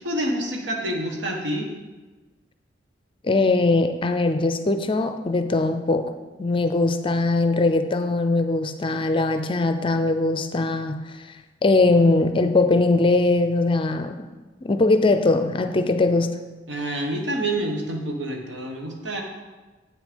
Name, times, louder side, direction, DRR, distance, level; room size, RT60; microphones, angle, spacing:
voice 1, 0.0-1.7 16.7-19.2, right 1 dB, 80° right, 2 dB, 1.4 m, -27 dB
voice 2, 3.2-6.1 6.4-11.0 11.6-14.2 14.6-16.4, left 2 dB, 30° left, 9 dB, 0.5 m, -21 dB
7.8 x 6.3 x 5.2 m, 1.2 s
head